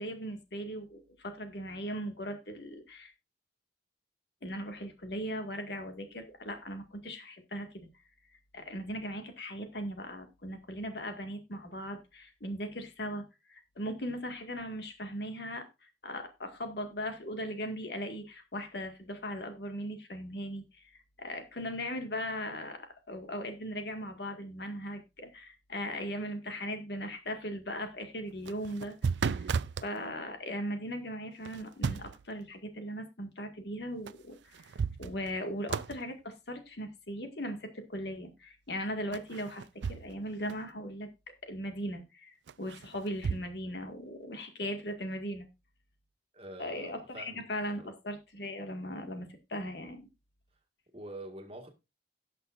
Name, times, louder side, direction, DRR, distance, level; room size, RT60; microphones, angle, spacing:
voice 1, 0.0-3.1 4.4-7.9 8.5-15.7 16.0-20.9 21.2-29.0 29.3-34.7 35.0-41.1 41.4-45.5 46.6-50.1, equal, 70° left, 1.9 m, -38 dB
sound 1, 28.3-29.9 31.4-32.3 34.1-34.2 34.5-35.4 35.7-36.0 39.1-40.2 40.5-40.6 42.5-43.5, right 5 dB, 85° right, 0.4 m, -34 dB
voice 2, 46.3-47.5 47.7-47.9 50.9-51.7, right 1 dB, 35° right, 1.8 m, -46 dB
18.0 x 6.0 x 2.5 m
head